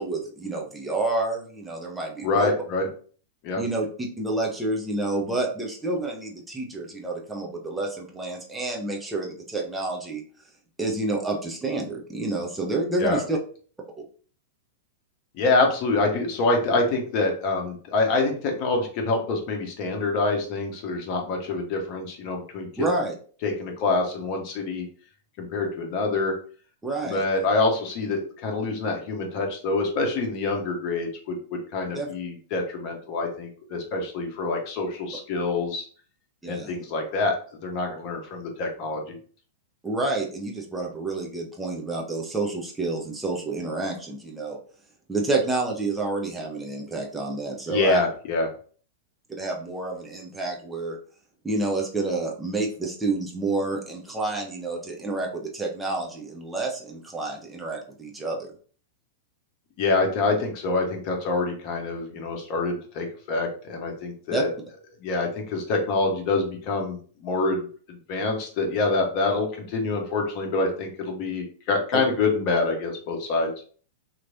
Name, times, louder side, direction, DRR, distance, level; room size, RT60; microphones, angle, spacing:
voice 1, 0.0-2.5 3.6-10.2 10.8-13.4 22.8-23.1 26.8-27.2 31.9-32.1 36.4-36.7 39.8-44.6 45.1-48.0 49.4-51.0 51.4-58.5 64.3-64.4 71.9-72.0, right 2 dB, 10° right, -1 dB, 0.7 m, -29 dB
voice 2, 2.2-2.9 3.4-3.6 13.0-13.2 15.4-22.9 23.4-24.9 25.4-26.3 27.0-35.8 36.5-37.4 37.6-39.2 47.7-48.5 59.8-64.5 65.0-67.7 68.1-73.5, left 3 dB, 40° left, 2 dB, 0.9 m, -26 dB
3.0 x 2.9 x 2.6 m, 0.43 s
figure-of-eight pair, 95°, 0 cm